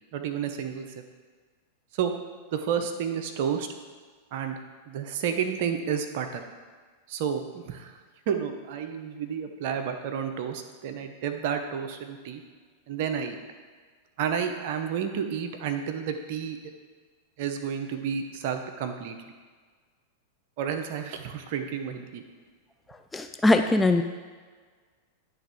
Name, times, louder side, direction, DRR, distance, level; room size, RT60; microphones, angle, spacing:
voice 1, 0.1-0.9 1.9-2.1 2.5-3.7 4.3-4.6 4.9-6.4 7.1-7.9 8.3-12.4 12.9-13.4 14.2-16.7 17.4-19.2 20.6-22.2, right 7 dB, 55° right, 6 dB, 0.6 m, -31 dB
voice 2, 23.1-24.0, left 2 dB, 10° left, 6 dB, 0.3 m, -21 dB
10.0 x 3.4 x 4.4 m, 1.5 s
hypercardioid pair, 95°, 0 cm